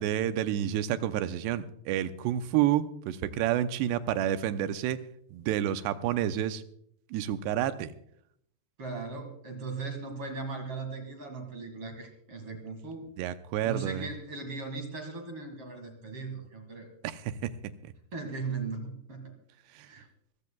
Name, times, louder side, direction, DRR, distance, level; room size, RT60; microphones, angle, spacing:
voice 1, 0.0-5.0 5.3-6.6 7.1-7.9 13.2-14.1 17.0-17.5 19.8-19.9, right 11 dB, 85° right, 10 dB, 2.9 m, -29 dB
voice 2, 8.8-13.1 13.6-16.9 18.1-19.3 19.8-20.1, right 4 dB, 45° right, 5 dB, 2.2 m, -38 dB
24.0 x 15.0 x 2.3 m, 0.68 s
omnidirectional pair, 4.8 m